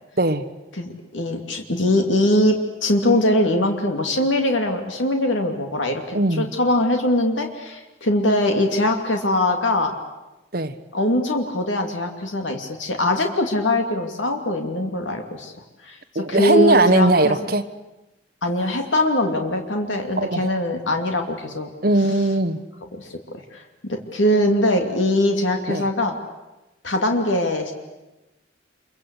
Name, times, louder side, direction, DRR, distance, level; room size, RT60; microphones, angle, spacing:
voice 1, 0.8-2.6 2.8-9.9 10.9-15.5 15.8-17.4 18.4-21.7 22.9-23.2 23.5-26.1 26.8-27.7, left 1 dB, 85° left, 4 dB, 2.7 m, -22 dB
voice 2, 6.1-6.5 10.5-10.7 16.1-17.6 20.2-20.6 21.8-22.6 25.7-25.9, right 2 dB, 50° right, 10 dB, 1.3 m, -19 dB
27.5 x 23.5 x 8.3 m, 1.1 s
head